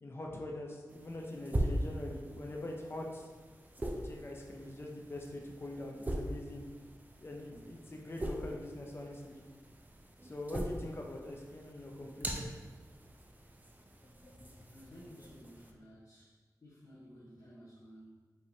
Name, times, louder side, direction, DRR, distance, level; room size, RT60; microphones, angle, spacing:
voice 1, 0.0-3.3 3.9-6.6 7.2-9.4 10.2-12.5 14.2-14.7, left 1 dB, 35° left, 0 dB, 0.6 m, -43 dB
sound 1, 0.9-15.7, right 1 dB, 25° right, 0.5 m, -42 dB
voice 2, 14.7-18.1, equal, 55° left, -7 dB, 0.9 m, -55 dB
5.3 x 3.4 x 2.7 m, 1.4 s
wide cardioid pair, 75°, 7 cm